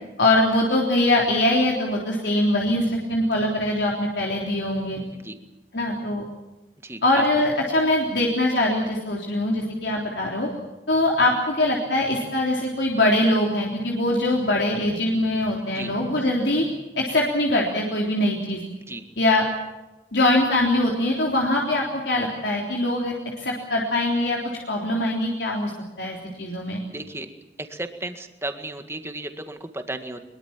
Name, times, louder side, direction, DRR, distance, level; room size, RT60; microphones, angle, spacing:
voice 1, 0.2-5.0 5.7-6.2 7.0-10.5 10.9-16.7 17.0-18.6 19.2-19.4 20.1-24.4 24.7-25.7 26.0-26.8, left 1 dB, 75° left, -2 dB, 3.7 m, -22 dB
voice 2, 26.9-27.3 27.6-30.2, right 2 dB, 15° right, 7 dB, 1.8 m, -34 dB
23.0 x 22.5 x 7.4 m, 1.0 s
head